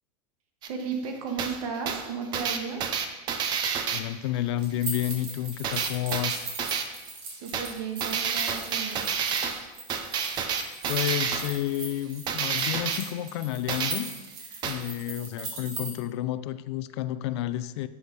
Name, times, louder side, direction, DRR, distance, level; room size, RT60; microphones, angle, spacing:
sound 1, 0.6-0.7 1.4-1.6 1.9-4.0 5.6-6.8 7.5-7.8 8.0-9.6 9.9-11.5 12.3-13.0 13.7-13.9 14.6-14.8, right 7 dB, 20° right, 0.6 m, -29 dB
voice 1, 0.6-2.8 7.3-9.1, right 5 dB, 60° right, 4 dB, 1.7 m, -34 dB
voice 2, 3.9-6.5 10.9-14.1 14.6-17.9, left 13 dB, 45° left, 14 dB, 0.4 m, -30 dB
sound 2, 4.6-15.9, right 3 dB, 45° right, 2.4 m, -39 dB
9.4 x 7.1 x 5.2 m, 1.1 s
supercardioid pair, 165°, 20 cm